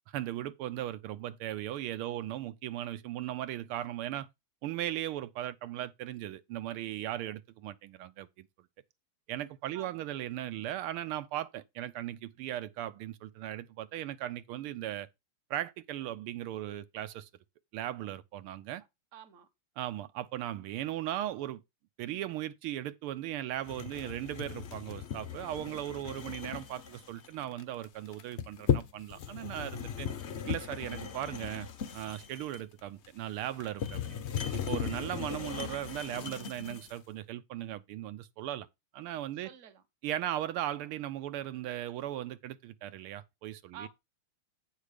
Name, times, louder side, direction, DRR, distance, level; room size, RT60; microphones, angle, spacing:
voice 1, 0.1-4.3 4.6-8.4 9.3-15.1 15.5-17.3 17.7-18.8 19.8-21.6 22.0-30.1 30.5-31.7 31.9-34.2 34.5-38.7 38.9-39.5 40.0-43.9, right 13 dB, 85° right, 1.6 m, -37 dB
voice 2, 19.1-19.5 39.4-39.8 43.7-43.9, right 8 dB, 45° right, 1.2 m, -48 dB
sound 1, 23.6-37.0, left 8 dB, 80° left, 0.6 m, -37 dB
8.4 x 5.6 x 5.0 m
omnidirectional pair, 2.4 m